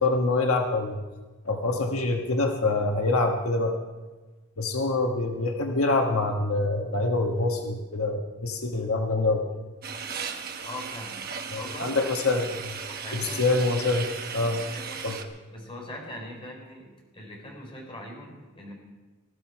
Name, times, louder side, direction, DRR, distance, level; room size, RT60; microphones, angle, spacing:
voice 1, 0.0-1.0 1.4-3.8 4.6-9.5 11.5-12.8 13.1-14.1 14.3-14.6 15.0-15.2, left 2 dB, 85° left, 2 dB, 1.4 m, -25 dB
sound 1, 9.8-15.2, right 6 dB, 45° right, 1.2 m, -36 dB
voice 2, 10.6-11.2 11.5-12.1 12.5-12.6 12.8-13.6 14.5-15.0 15.5-18.7, left 1 dB, 25° left, 0 dB, 4.3 m, -41 dB
20.0 x 13.5 x 4.8 m, 1.2 s
head